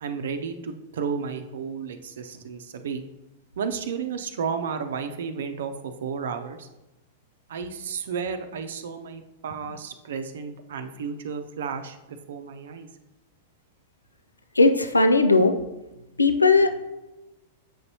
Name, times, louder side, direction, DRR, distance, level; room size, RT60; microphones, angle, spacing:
voice 1, 0.0-3.0 3.6-6.7 7.5-12.9, right 6 dB, 65° right, 8 dB, 0.6 m, -32 dB
voice 2, 14.6-15.5 16.2-16.8, left 3 dB, 90° left, 8 dB, 0.5 m, -18 dB
7.6 x 5.3 x 2.9 m, 1.0 s
figure-of-eight pair, 100°, 0 cm